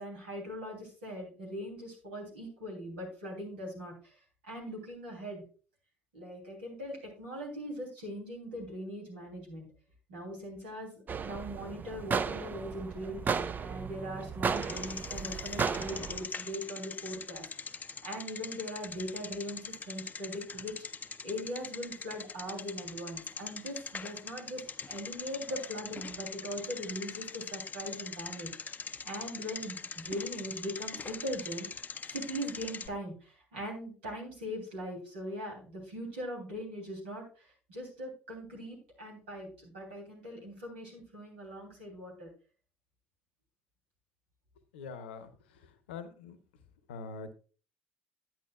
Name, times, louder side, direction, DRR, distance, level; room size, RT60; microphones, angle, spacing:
voice 1, 0.0-5.4 6.1-9.6 10.1-29.8 30.0-31.7 32.1-42.3, equal, 75° right, -1 dB, 3.2 m, -41 dB
sound 1, 11.1-16.3, right 6 dB, 30° right, 0.5 m, -35 dB
Bicycle, 14.5-32.9, left 5 dB, 30° left, 0.6 m, -42 dB
voice 2, 44.7-45.3 45.6-46.4 46.9-47.3, left 4 dB, 75° left, 12 dB, 0.8 m, -43 dB
10.5 x 8.7 x 2.4 m, 0.37 s
figure-of-eight pair, 55°, 6 cm